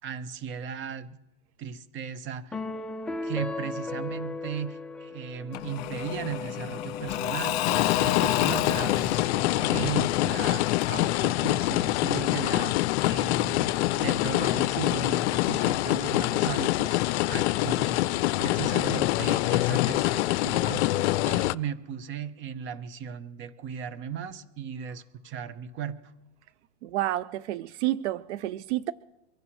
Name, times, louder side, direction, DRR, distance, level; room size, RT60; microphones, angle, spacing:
voice 1, 0.0-1.2 1.6-2.6 3.2-7.6 8.0-17.0 17.3-20.9 21.2-26.1, right 8 dB, 35° right, 12 dB, 1.0 m, -36 dB
sound 1, 2.5-6.0, left 2 dB, ahead, 0.4 m, -36 dB
Engine / Mechanisms / Drill, 5.5-12.2, left 11 dB, 45° left, 1.7 m, -31 dB
sound 2, 7.6-21.5, left 17 dB, 65° left, 0.5 m, -25 dB
voice 2, 26.8-28.9, right 15 dB, 70° right, 16 dB, 0.6 m, -29 dB
24.0 x 16.5 x 3.2 m, 0.98 s
supercardioid pair, 130°, 36 cm